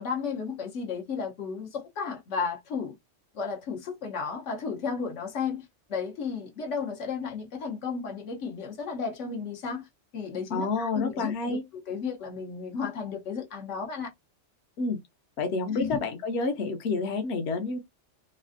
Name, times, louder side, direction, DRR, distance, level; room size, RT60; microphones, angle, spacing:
voice 1, 0.0-3.0 3.3-9.9 10.1-11.6 11.9-14.1 15.7-16.0, left 5 dB, 85° left, 1.2 m, -33 dB
voice 2, 10.5-11.6 14.8-15.0 15.4-17.8, left 3 dB, 70° left, 1.0 m, -29 dB
3.2 x 2.5 x 2.5 m
omnidirectional pair, 1.2 m